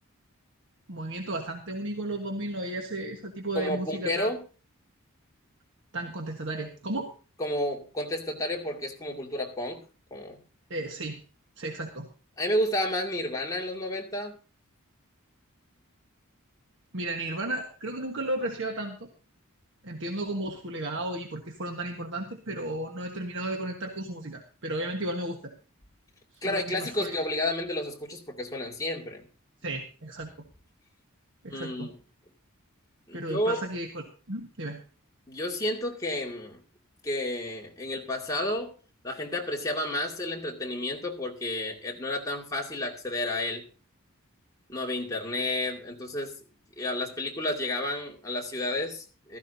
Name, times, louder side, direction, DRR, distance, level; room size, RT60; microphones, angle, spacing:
voice 1, 0.9-4.3 5.9-7.1 10.7-11.2 11.6-12.1 16.9-19.1 19.8-25.5 26.3-27.2 29.6-30.3 31.4-31.9 33.1-34.8, right 1 dB, 60° right, 3 dB, 1.4 m, -34 dB
voice 2, 3.5-4.4 7.4-9.8 10.1-10.4 12.4-14.4 26.4-29.2 31.5-31.9 33.1-33.6 35.3-36.6 37.0-38.7 39.0-43.6 44.7-46.4 46.8-49.4, left 1 dB, 15° left, -1 dB, 2.3 m, -31 dB
15.5 x 14.0 x 2.7 m, 0.36 s
head